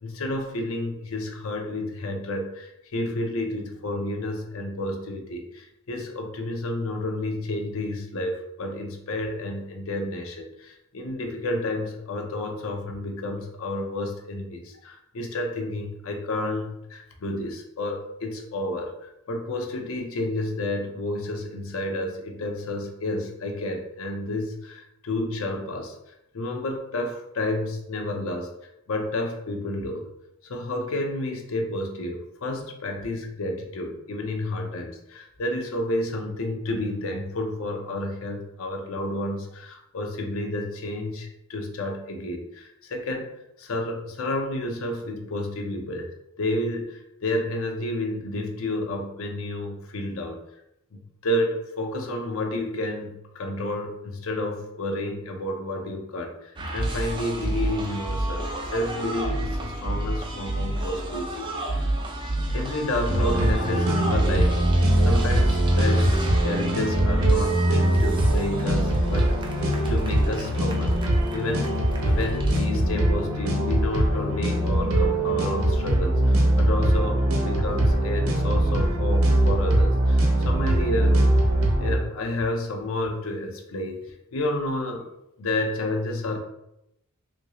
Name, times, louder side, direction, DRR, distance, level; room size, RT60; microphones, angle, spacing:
voice 1, 0.0-26.0 26.3-28.5 28.9-30.1 30.4-43.3 43.6-46.1 46.4-50.4 50.9-61.9 62.5-71.0 71.3-71.8 72.0-81.2 81.8-84.0 84.3-85.1 85.4-86.4, left 1 dB, 70° left, 3 dB, 0.6 m, -30 dB
sound 1, 56.6-72.6, right 1 dB, 20° right, 0.4 m, -30 dB
sound 2, 63.1-82.0, right 1 dB, 75° right, 0.7 m, -22 dB
3.1 x 2.5 x 2.9 m, 0.81 s
head